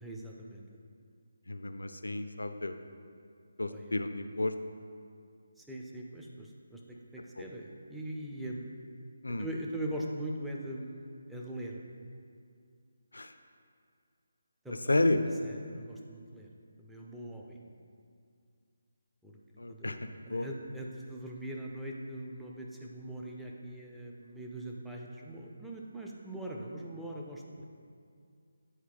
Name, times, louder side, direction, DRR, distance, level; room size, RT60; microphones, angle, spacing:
voice 1, 0.0-0.6 3.7-3.9 5.6-8.7 9.4-11.8 14.6-14.9 15.4-16.5 16.8-17.6 19.2-19.4 19.7-20.0 20.2-27.6, right 1 dB, ahead, -3 dB, 0.4 m, -41 dB
voice 2, 1.5-2.7 3.6-4.5 7.4-7.5 9.2-9.5 13.1-13.3 14.7-15.2 19.6-20.5, left 2 dB, 65° left, 9 dB, 0.4 m, -31 dB
8.7 x 4.4 x 3.5 m, 2.3 s
figure-of-eight pair, 150°, 0 cm